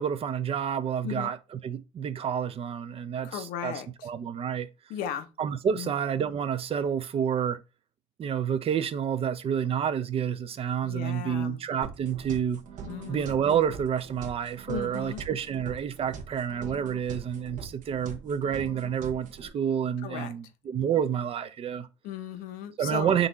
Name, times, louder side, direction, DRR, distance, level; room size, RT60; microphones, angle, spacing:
voice 1, 0.0-1.4 1.6-3.7 4.0-4.7 5.4-7.6 8.2-12.6 13.1-21.9 22.8-23.3, right 8 dB, 40° right, 0.4 m, -29 dB
voice 2, 3.2-4.1 4.9-5.3 5.7-5.9 10.8-11.6 12.9-13.3 14.7-15.2 20.0-20.3 22.0-23.2, left 9 dB, 80° left, 0.7 m, -36 dB
sound 1, 11.8-19.5, right 6 dB, 60° right, 0.8 m, -43 dB
3.8 x 2.4 x 3.8 m
supercardioid pair, 90°, 15 cm